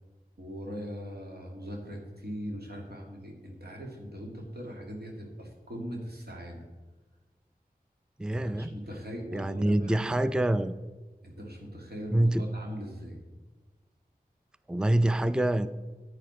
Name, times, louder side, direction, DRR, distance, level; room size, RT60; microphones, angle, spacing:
voice 1, 0.4-6.6 8.3-10.3 11.2-13.2, equal, 90° right, 0 dB, 2.4 m, -40 dB
voice 2, 8.2-8.7 9.3-10.8 12.1-12.4 14.7-15.7, right 1 dB, 5° right, 13 dB, 0.4 m, -26 dB
10.0 x 9.6 x 4.3 m, 1.3 s
wide cardioid pair, 50°, 16 cm